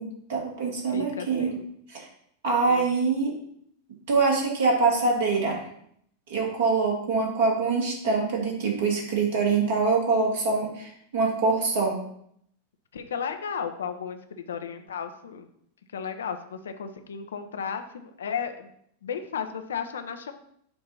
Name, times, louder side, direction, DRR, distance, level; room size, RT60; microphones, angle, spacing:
voice 1, 0.0-1.5 1.9-2.1 2.4-3.4 4.1-5.6 6.3-12.0, right 4 dB, 55° right, -1 dB, 2.0 m, -24 dB
voice 2, 0.9-1.6 2.6-2.9 12.9-15.5 15.9-18.7 19.0-20.3, left 7 dB, 65° left, 8 dB, 0.6 m, -34 dB
6.8 x 2.8 x 5.4 m, 0.69 s
figure-of-eight pair, 90°, 0 cm